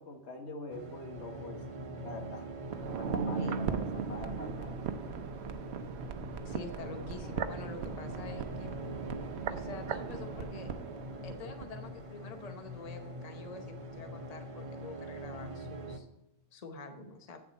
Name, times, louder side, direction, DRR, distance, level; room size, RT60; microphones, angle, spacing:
voice 1, 0.0-1.6 2.0-2.5 3.0-4.8, left 2 dB, 75° left, 3 dB, 1.5 m, -44 dB
sound 1, 0.7-16.0, right 1 dB, 30° right, 0.9 m, -44 dB
sound 2, 1.2-14.5, equal, 5° left, 2.1 m, -53 dB
sound 3, 2.7-11.7 12.0-12.1, right 6 dB, 75° right, 0.9 m, -38 dB
voice 2, 6.4-8.7 9.5-10.7 11.2-16.1 16.5-17.4, left 3 dB, 35° left, 5 dB, 1.0 m, -46 dB
8.8 x 7.0 x 4.1 m, 0.91 s
omnidirectional pair, 1.1 m